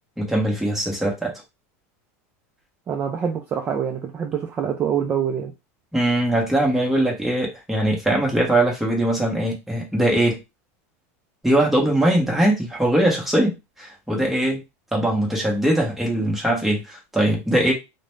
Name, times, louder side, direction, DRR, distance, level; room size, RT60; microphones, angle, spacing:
voice 1, 0.2-1.3 5.9-10.4 11.4-14.6 14.9-17.7, right 1 dB, ahead, -2 dB, 0.9 m, -21 dB
voice 2, 2.9-5.5, right 8 dB, 20° right, 3 dB, 0.4 m, -25 dB
2.4 x 2.1 x 3.0 m, 0.24 s
supercardioid pair, 150°, 8 cm